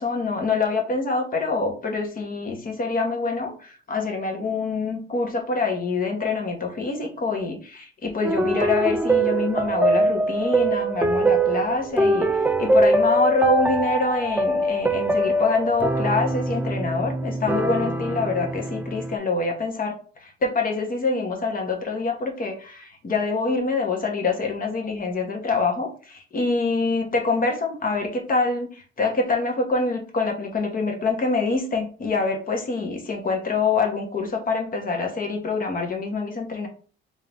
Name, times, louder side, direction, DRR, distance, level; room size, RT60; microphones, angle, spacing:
voice 1, 0.0-36.7, left 3 dB, 45° left, 2 dB, 1.2 m, -25 dB
sound 1, 8.2-19.2, right 2 dB, 10° right, 0.3 m, -23 dB
3.6 x 2.8 x 3.5 m, 0.40 s
cardioid pair, 100°, 21 cm